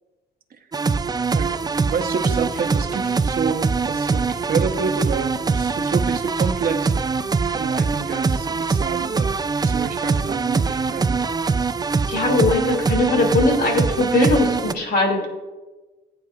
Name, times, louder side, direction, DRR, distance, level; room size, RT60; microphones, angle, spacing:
sound 1, 0.7-14.7, right 4 dB, 20° right, 0.4 m, -23 dB
voice 1, 1.3-6.9 7.6-9.3 9.6-11.2, right 6 dB, 45° right, 5 dB, 1.0 m, -28 dB
voice 2, 12.1-15.3, left 2 dB, 50° left, 1 dB, 2.6 m, -20 dB
16.0 x 9.2 x 2.5 m, 1.2 s
cardioid pair, 90°, 20 cm